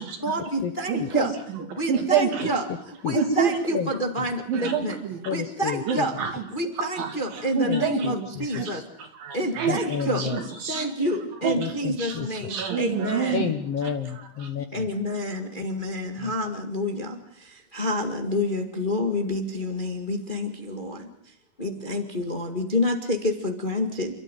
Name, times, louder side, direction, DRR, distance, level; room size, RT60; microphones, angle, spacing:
voice 1, 0.2-1.3 1.7-2.6 3.0-5.0 5.3-6.1 6.5-8.8 9.3-10.3 10.7-13.4 14.7-21.1 21.6-24.1, left 1 dB, 20° left, 5 dB, 1.5 m, -28 dB
voice 2, 0.9-2.5 3.1-3.6 4.5-5.2 5.9-6.4 7.0-8.3 8.5-10.9 11.4-13.5 13.8-13.9, right 6 dB, 70° right, 5 dB, 4.4 m, -28 dB
voice 3, 5.3-6.1 7.7-8.8 9.7-10.8 11.6-12.3 13.3-14.9 16.2-16.3, left 8 dB, 60° left, 8 dB, 1.8 m, -31 dB
29.0 x 13.5 x 9.1 m, 0.68 s
omnidirectional pair, 4.1 m